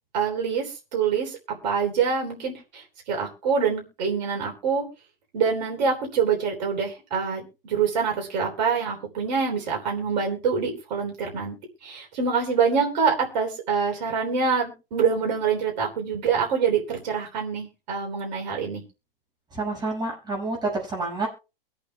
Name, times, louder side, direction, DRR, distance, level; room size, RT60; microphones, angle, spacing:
voice 1, 0.1-1.4 1.6-4.9 5.3-11.6 11.8-18.8, right 6 dB, 50° right, 1 dB, 3.6 m, -25 dB
voice 2, 19.5-21.3, right 3 dB, 15° right, -2 dB, 6.3 m, -28 dB
23.5 x 8.5 x 2.3 m, 0.30 s
hypercardioid pair, 130°, 29 cm